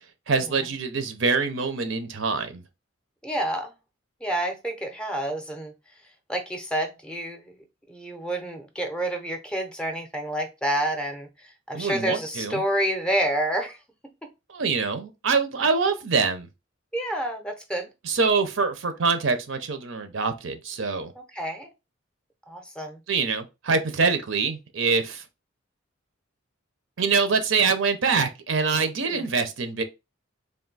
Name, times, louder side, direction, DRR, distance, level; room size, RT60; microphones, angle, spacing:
voice 1, 0.3-2.6 11.7-12.6 14.5-16.5 18.0-21.1 23.1-25.2 27.0-29.8, right 4 dB, 75° right, 0.7 m, -25 dB
voice 2, 3.2-3.7 4.2-5.7 6.3-7.5 7.9-13.8 16.9-17.9 21.3-21.7 22.5-23.0 29.0-29.4, right 1 dB, 5° left, 0.6 m, -29 dB
3.5 x 2.6 x 4.0 m
head